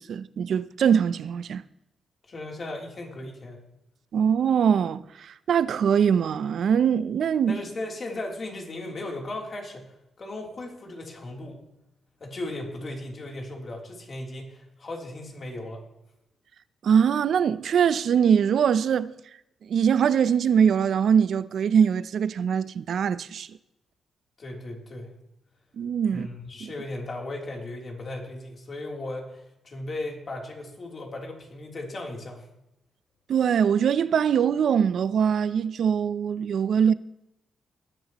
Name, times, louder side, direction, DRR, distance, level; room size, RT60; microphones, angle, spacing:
voice 1, 0.0-1.6 4.1-7.6 16.8-19.1 19.7-23.5 25.8-26.3 26.6-26.7 33.3-36.9, right 7 dB, 65° right, 0.5 m, -22 dB
voice 2, 2.3-3.6 7.5-11.6 12.2-15.8 24.4-25.1 26.1-32.5, left 2 dB, 40° left, 3.2 m, -36 dB
20.0 x 11.0 x 3.0 m
cardioid pair, 125°, 0 cm